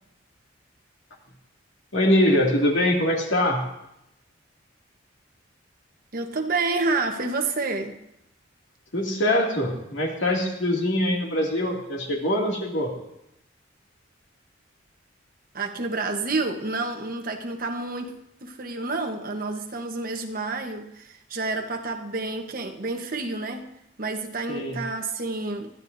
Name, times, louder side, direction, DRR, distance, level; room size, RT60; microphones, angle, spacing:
voice 1, 1.9-3.6 8.9-12.9 24.5-24.8, left 1 dB, 70° left, -1 dB, 2.5 m, -23 dB
voice 2, 6.1-8.0 15.5-18.1 18.4-23.7 24.0-25.7, right 3 dB, 45° right, 4 dB, 1.2 m, -29 dB
20.5 x 13.5 x 2.7 m, 0.83 s
head